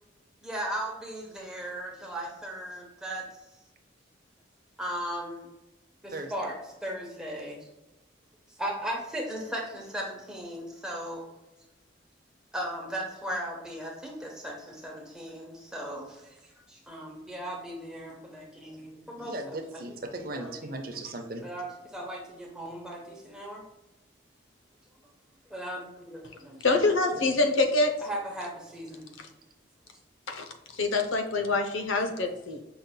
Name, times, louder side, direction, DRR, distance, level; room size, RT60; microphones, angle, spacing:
voice 1, 0.4-3.3 4.8-5.5 6.0-7.6 8.6-11.3 12.5-16.4 16.7-20.0 20.3-20.7 21.4-23.6 25.5-26.6 28.0-29.1, equal, 5° right, -2 dB, 0.9 m, -37 dB
voice 2, 19.2-21.4 26.7-26.9, right 2 dB, 45° right, 4 dB, 0.6 m, -37 dB
voice 3, 26.6-27.9 30.3-32.6, left 3 dB, 90° left, 5 dB, 0.7 m, -25 dB
5.7 x 3.9 x 2.2 m, 0.97 s
head